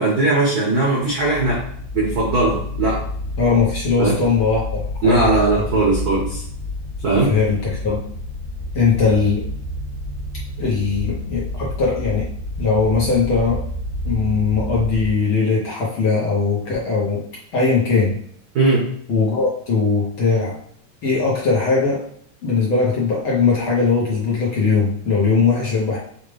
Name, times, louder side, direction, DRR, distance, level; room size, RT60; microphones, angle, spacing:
voice 1, 0.0-1.7 1.9-3.0 4.0-4.2 5.0-6.4 7.0-7.4 18.5-18.9, right 2 dB, 90° right, -4 dB, 0.8 m, -19 dB
sound 1, 1.2-15.1, left 1 dB, 75° left, 2.3 m, -29 dB
voice 2, 3.4-5.3 7.3-8.0 8.7-9.4 10.6-12.3 12.6-13.6 14.0-17.2 17.5-18.2 19.1-20.6 21.0-22.0 22.4-26.0, left 4 dB, 60° left, -5 dB, 1.5 m, -19 dB
6.4 x 2.4 x 3.2 m, 0.63 s
omnidirectional pair, 3.3 m